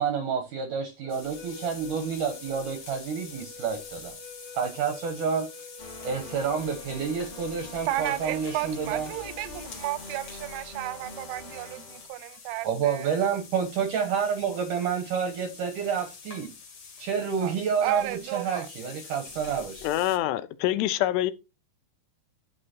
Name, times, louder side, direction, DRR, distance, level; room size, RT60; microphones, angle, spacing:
voice 1, 0.0-4.1 4.5-5.5 6.0-9.1 12.6-16.5 17.0-19.9, right 6 dB, 75° right, 1.9 m, -29 dB
sound 1, 1.0-8.8, left 2 dB, 65° left, 1.2 m, -48 dB
sound 2, 1.1-20.2, left 5 dB, 45° left, 1.7 m, -46 dB
sound 3, 5.8-12.1, left 2 dB, 20° left, 1.3 m, -45 dB
voice 2, 7.9-13.1 17.4-17.5 17.8-18.7, right 15 dB, 90° right, 3.0 m, -33 dB
voice 3, 19.8-21.3, left 14 dB, 80° left, 2.6 m, -25 dB
11.5 x 6.4 x 2.9 m
omnidirectional pair, 5.1 m